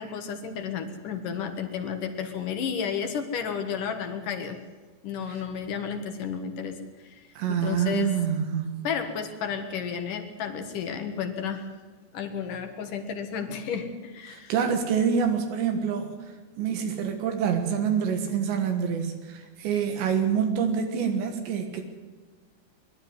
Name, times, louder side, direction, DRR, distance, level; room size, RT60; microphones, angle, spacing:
voice 1, 0.0-4.6 5.0-6.8 7.0-7.2 7.5-8.2 8.8-11.7 12.1-14.5, left 7 dB, 60° left, 6 dB, 2.7 m, -32 dB
voice 2, 7.4-8.8 14.3-16.1 16.6-21.8, right 7 dB, 85° right, 5 dB, 3.8 m, -26 dB
23.5 x 12.0 x 9.6 m, 1.4 s
omnidirectional pair, 5.0 m